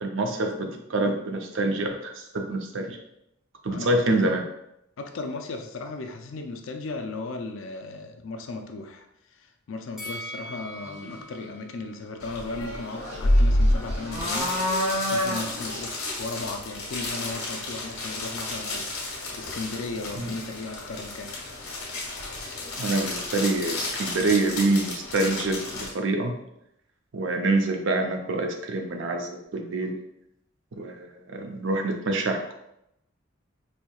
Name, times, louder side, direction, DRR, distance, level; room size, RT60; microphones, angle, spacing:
voice 1, 0.0-3.0 3.6-4.4 20.2-20.3 22.8-26.4 27.1-30.0 30.7-32.5, right 2 dB, 65° right, 4 dB, 0.5 m, -26 dB
voice 2, 3.7-4.3 5.0-9.1 9.3-21.4, left 3 dB, 70° left, 5 dB, 0.4 m, -36 dB
Bell, 10.0-13.2 13.5-13.6, equal, ahead, 0.5 m, -42 dB
sound 1, 10.0-10.3 10.7-11.4 12.7-12.8 13.1-15.9, left 1 dB, 30° right, 1.0 m, -30 dB
sound 2, 12.2-25.9, left 1 dB, 90° left, 1.2 m, -30 dB
4.3 x 2.7 x 2.3 m, 0.81 s
head